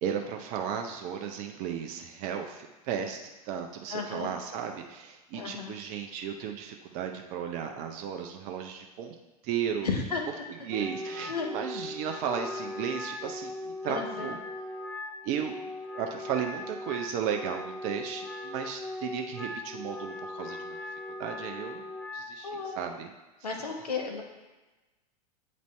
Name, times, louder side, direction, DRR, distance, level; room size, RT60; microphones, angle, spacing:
voice 1, 0.0-3.2 3.4-9.1 9.4-9.9 10.7-14.4 15.2-15.6 15.9-20.8 21.2-21.9 22.1-22.5 22.8-23.1, right 8 dB, 40° right, 3 dB, 0.6 m, -34 dB
voice 2, 3.9-4.3 5.3-5.7 9.8-10.2 11.3-11.5 13.8-14.3 22.4-22.8 23.4-24.2, left 5 dB, 75° left, 2 dB, 1.0 m, -33 dB
Wind instrument woodwind instrument, 10.7-22.4, left 2 dB, 5° left, 0.4 m, -39 dB
8.5 x 4.0 x 3.2 m, 1.1 s
figure-of-eight pair, 90°, 20 cm